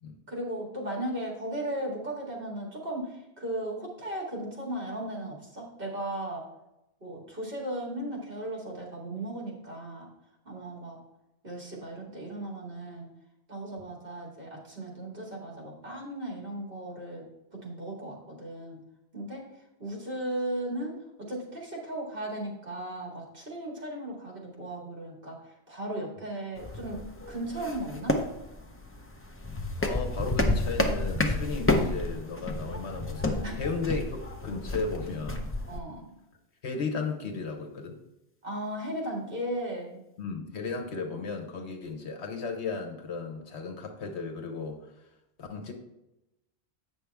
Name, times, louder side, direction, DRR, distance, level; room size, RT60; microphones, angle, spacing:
voice 1, 0.3-6.5 7.0-10.1 10.5-11.0 11.4-13.1 13.5-17.3 17.5-18.8 19.1-19.4 19.8-27.0 27.3-28.2 33.4-33.6 35.7-36.1 38.4-40.0, right 1 dB, 55° right, -2 dB, 2.2 m, -36 dB
sound 1, 26.6-35.8, left 2 dB, 15° left, 0.5 m, -30 dB
voice 2, 29.8-35.5 36.6-38.0 40.2-44.9 45.4-45.7, left 4 dB, 75° left, 4 dB, 1.2 m, -35 dB
8.3 x 6.1 x 3.4 m, 0.92 s
omnidirectional pair, 1.1 m